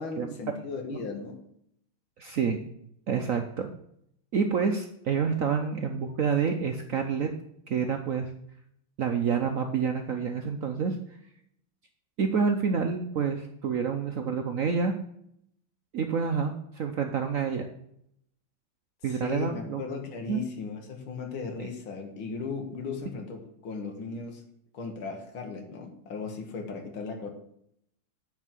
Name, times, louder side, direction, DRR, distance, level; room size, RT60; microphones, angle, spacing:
voice 1, 0.0-1.4 19.0-24.4 24.7-27.3, left 4 dB, 75° left, 3 dB, 2.2 m, -37 dB
voice 2, 2.2-2.6 3.1-3.7 4.3-7.3 7.7-8.3 9.0-11.0 12.2-14.9 15.9-17.7 19.0-19.8 20.3-20.4 21.6-21.7, right 6 dB, 65° right, 5 dB, 0.8 m, -28 dB
9.7 x 4.6 x 7.5 m, 0.72 s
omnidirectional pair, 2.3 m